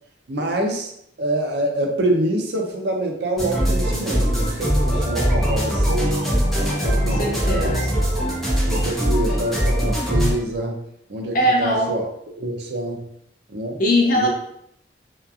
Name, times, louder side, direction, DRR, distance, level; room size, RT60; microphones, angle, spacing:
voice 1, 0.3-0.9 1.2-6.3 6.7-7.7 8.6-10.8 11.1-12.0 12.4-13.1 13.5-13.8 14.1-14.3, right 1 dB, 65° right, 2 dB, 0.5 m, -26 dB
sound 1, 3.4-10.3, equal, ahead, 0.7 m, -21 dB
voice 2, 7.0-8.0 11.3-11.9 13.8-14.3, equal, 50° left, -1 dB, 0.6 m, -21 dB
2.9 x 2.3 x 2.3 m, 0.72 s
head